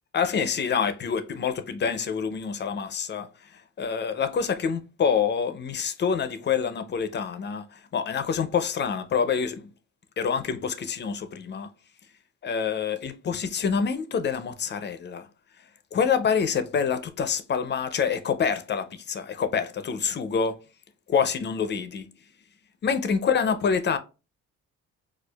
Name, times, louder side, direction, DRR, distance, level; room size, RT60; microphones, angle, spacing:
voice 1, 0.1-3.3 3.8-9.7 10.2-11.7 12.4-15.3 15.9-20.6 21.1-22.1 22.8-24.0, left 6 dB, 35° left, 0.5 m, -26 dB
4.3 x 2.4 x 2.2 m
cardioid pair, 90°, 30 cm